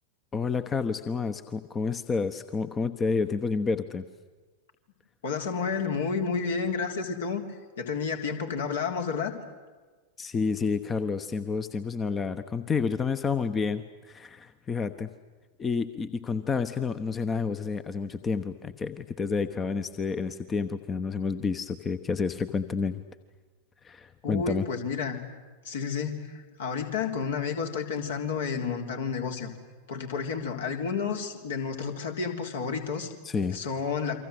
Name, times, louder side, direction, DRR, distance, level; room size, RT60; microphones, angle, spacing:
voice 1, 0.3-4.0 10.2-15.1 15.6-23.0 23.8-24.6 33.2-33.6, left 5 dB, 20° left, 12 dB, 1.0 m, -29 dB
voice 2, 5.2-9.3 24.2-25.2 25.6-29.5 29.9-33.1 33.5-34.2, left 5 dB, 65° left, 4 dB, 3.5 m, -31 dB
29.0 x 24.5 x 8.0 m, 1.3 s
figure-of-eight pair, 90°, 0 cm